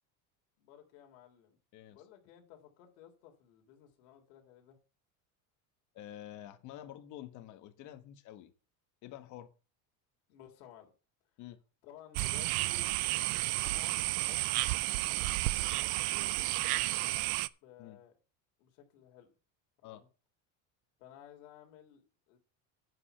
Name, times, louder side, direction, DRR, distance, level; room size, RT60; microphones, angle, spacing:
voice 1, 0.6-1.6 1.9-4.8 10.3-10.9 11.8-17.3 17.6-18.1 18.6-19.3 19.8-20.1 21.0-22.4, left 10 dB, 85° left, 3.6 m, -57 dB
voice 2, 5.9-8.5 9.0-9.5 11.4-11.6 17.8-18.0 19.8-20.0, left 12 dB, 45° left, 1.5 m, -48 dB
sound 1, 12.1-17.5, right 20 dB, 65° right, 0.6 m, -32 dB
9.6 x 5.3 x 7.9 m
cardioid pair, 160°, 40 cm